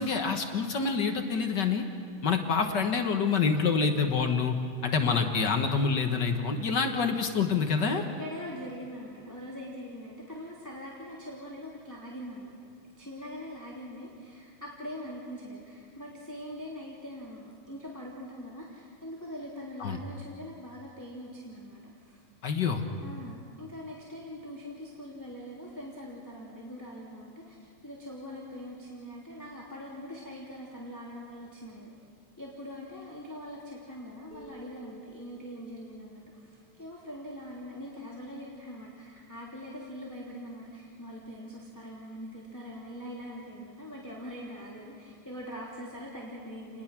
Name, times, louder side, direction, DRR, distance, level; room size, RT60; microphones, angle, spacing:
voice 1, 0.0-1.8 2.2-4.6 4.8-8.0 19.8-20.0 22.4-22.8, left 5 dB, 50° left, 5 dB, 1.5 m, -27 dB
voice 2, 7.7-12.6 13.0-22.2 23.0-32.0 32.4-46.8, equal, 5° left, -6 dB, 2.8 m, -43 dB
sound 1, 34.3-37.8, right 1 dB, 75° right, 6.0 m, -55 dB
29.5 x 20.5 x 6.1 m, 2.2 s
omnidirectional pair, 3.3 m